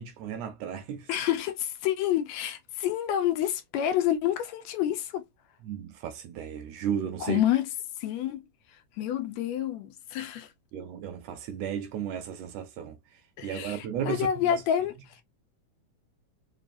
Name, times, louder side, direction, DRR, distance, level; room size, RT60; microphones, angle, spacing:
voice 1, 0.0-1.1 5.6-7.4 10.7-14.6, right 8 dB, 80° right, 1.6 m, -34 dB
voice 2, 1.1-5.2 7.2-8.4 8.7-10.5 13.4-15.2, left 11 dB, 80° left, 1.8 m, -28 dB
4.6 x 3.1 x 2.5 m
omnidirectional pair, 3.3 m